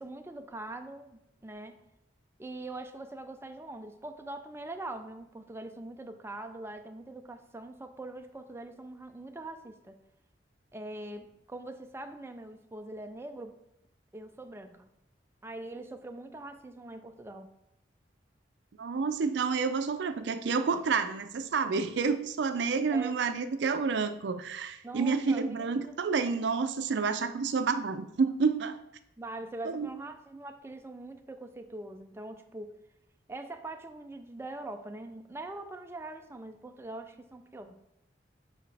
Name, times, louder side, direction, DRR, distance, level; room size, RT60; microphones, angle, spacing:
voice 1, 0.0-1.8 2.4-10.0 10.7-13.6 14.1-14.9 15.4-17.5 22.9-23.2 24.8-26.0 29.2-32.8 33.3-37.8, right 2 dB, 15° right, 6 dB, 0.4 m, -43 dB
voice 2, 18.8-28.8 29.7-29.9, right 5 dB, 70° right, 10 dB, 0.4 m, -29 dB
6.8 x 4.9 x 3.3 m, 0.82 s
head